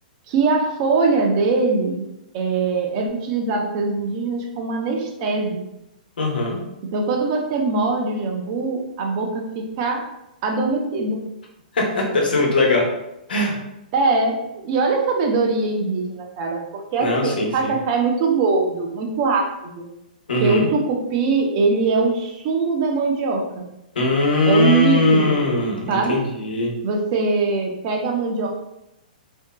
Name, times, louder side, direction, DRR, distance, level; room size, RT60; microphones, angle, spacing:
voice 1, 0.3-2.1 2.3-5.6 6.9-10.1 10.4-11.2 13.9-19.9 20.4-23.6 24.5-25.4 25.9-26.2 26.8-28.5, right 4 dB, 40° right, 1 dB, 0.6 m, -22 dB
voice 2, 6.2-6.6 11.7-12.9 13.3-13.6 17.0-17.7 20.3-20.7 23.9-26.7, left 2 dB, 90° left, -1 dB, 0.9 m, -20 dB
3.6 x 2.7 x 2.2 m, 0.86 s
hypercardioid pair, 145°, 5 cm